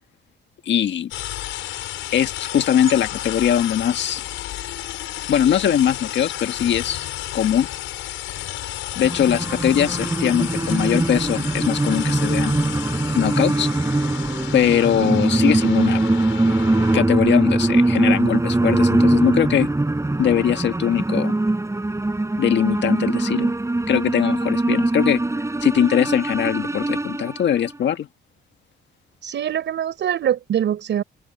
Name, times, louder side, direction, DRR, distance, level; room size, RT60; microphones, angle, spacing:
voice 1, 0.6-1.1 2.1-4.2 5.3-7.1 7.3-7.7 8.9-12.6 13.1-13.7 14.5-16.0 16.9-19.7 20.2-21.3 22.4-23.5 23.9-25.2 25.6-28.1, left 9 dB, 65° left, 1.7 m, -21 dB
sound 1, 1.1-17.0, left 13 dB, 90° left, 6.3 m, -32 dB
sound 2, 9.0-27.8, right 2 dB, 15° right, 7.5 m, -22 dB
voice 2, 29.2-31.0, right 10 dB, 65° right, 6.3 m, -23 dB
open air
cardioid pair, 90°, 20 cm